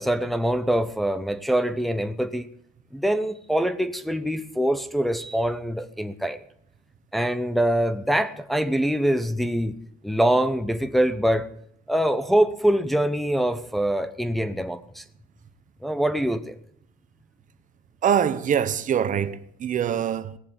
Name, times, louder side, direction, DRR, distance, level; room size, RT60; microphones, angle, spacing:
voice 1, 0.0-2.5 2.9-6.4 7.1-9.8 10.0-11.5 11.9-15.0 15.8-16.5, right 1 dB, ahead, 0.9 m, -24 dB
voice 2, 18.0-20.4, right 8 dB, 50° right, 1.1 m, -24 dB
17.5 x 7.3 x 9.9 m
cardioid pair, 110°, 17 cm